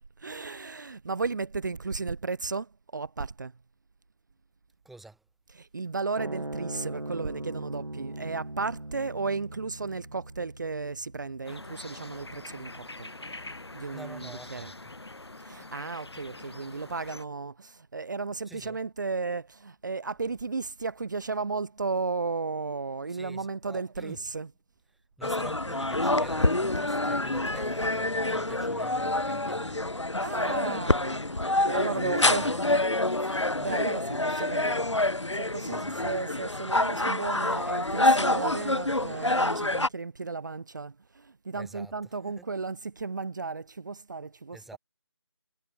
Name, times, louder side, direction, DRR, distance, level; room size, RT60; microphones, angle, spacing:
voice 1, 0.2-3.5 5.5-13.1 13.7-14.7 15.4-24.5 30.2-32.7 33.1-44.8, right 4 dB, 40° right, 1.3 m, -34 dB
voice 2, 4.8-5.2 13.9-14.7 18.5-18.8 23.1-24.2 25.2-29.8 31.9-32.6 35.6-36.1 41.5-41.9 42.2-42.4 44.5-44.8, right 2 dB, ahead, 3.1 m, -48 dB
sound 1, 6.2-12.8, right 1 dB, 85° right, 2.2 m, -40 dB
sound 2, 11.4-17.2, left 2 dB, 65° left, 6.8 m, -44 dB
sound 3, 25.2-39.9, left 2 dB, 85° left, 1.6 m, -27 dB
figure-of-eight pair, 160°, 15 cm